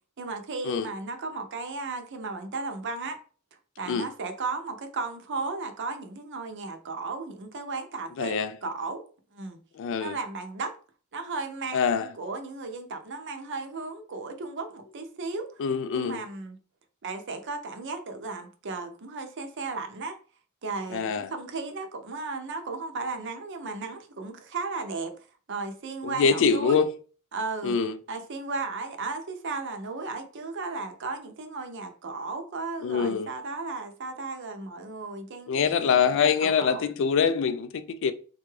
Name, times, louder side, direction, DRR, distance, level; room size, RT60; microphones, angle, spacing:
voice 1, 0.2-3.2 3.8-9.0 9.3-9.6 10.0-10.7 11.1-15.6 15.9-16.6 17.0-20.2 20.6-26.8 27.3-27.7 28.1-36.8, right 3 dB, 55° right, 0.6 m, -35 dB
voice 2, 8.2-8.5 9.8-10.2 11.7-12.1 15.6-16.2 20.9-21.3 26.0-26.8 27.6-28.0 32.8-33.3 35.5-38.1, left 6 dB, 60° left, 0.3 m, -24 dB
3.6 x 2.3 x 3.1 m
head